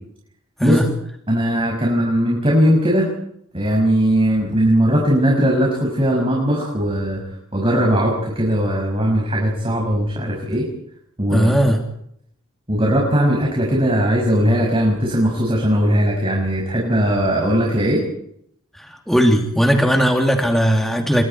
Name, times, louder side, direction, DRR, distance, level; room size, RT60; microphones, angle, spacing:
voice 1, 1.3-3.1 3.5-7.2 7.5-10.6 11.2-11.5 12.7-18.0, equal, 25° right, -2 dB, 6.4 m, -18 dB
voice 2, 11.3-11.8 18.7-21.2, equal, ahead, 1 dB, 2.8 m, -17 dB
29.5 x 24.0 x 4.6 m, 0.72 s
head